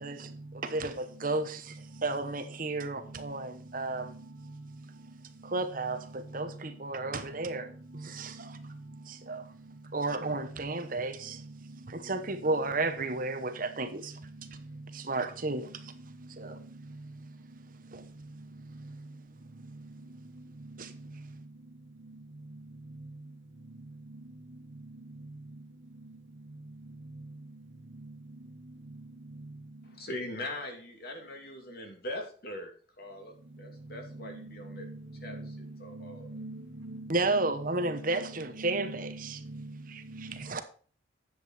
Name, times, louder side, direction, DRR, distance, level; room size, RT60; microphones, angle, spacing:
voice 1, 0.0-4.1 5.4-8.6 9.1-9.5 9.9-11.4 11.9-14.2 14.9-15.9 16.4-16.6 17.9-18.0 20.8-20.9 37.1-39.4 39.9-40.0 40.3-40.6, right 2 dB, 45° right, 1.0 m, -33 dB
voice 2, 29.9-32.7 33.0-34.8 35.2-35.3 35.8-36.3, left 1 dB, 50° left, 2.6 m, -41 dB
voice 3, 34.2-35.0 35.2-35.6 35.9-37.5 37.8-39.7 40.1-40.6, right 2 dB, 80° right, 1.6 m, -43 dB
10.5 x 7.8 x 4.2 m
head